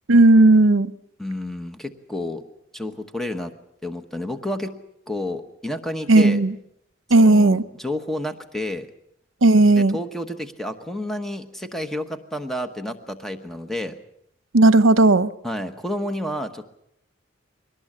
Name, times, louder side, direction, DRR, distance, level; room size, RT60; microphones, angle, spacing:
voice 1, 0.1-0.9 6.1-6.5 7.1-7.6 9.4-10.0 14.5-15.3, right 2 dB, 75° right, 0.8 m, -14 dB
voice 2, 1.2-2.4 2.7-3.5 3.8-4.7 5.1-6.4 7.2-8.9 9.8-14.0 15.4-16.6, left 1 dB, ahead, 1.1 m, -30 dB
23.0 x 18.5 x 7.4 m
head